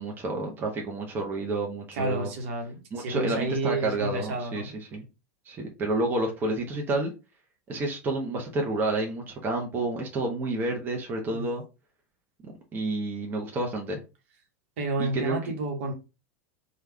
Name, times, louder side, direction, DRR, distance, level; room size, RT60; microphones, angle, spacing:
voice 1, 0.0-2.3 2.9-5.1 5.5-7.1 7.7-11.6 12.4-14.0 15.0-15.3, right 2 dB, 25° right, 0.9 m, -30 dB
voice 2, 1.9-4.7 11.3-11.5 14.8-15.9, right 2 dB, 55° right, 1.1 m, -30 dB
3.3 x 2.4 x 3.3 m
figure-of-eight pair, 90°, 8 cm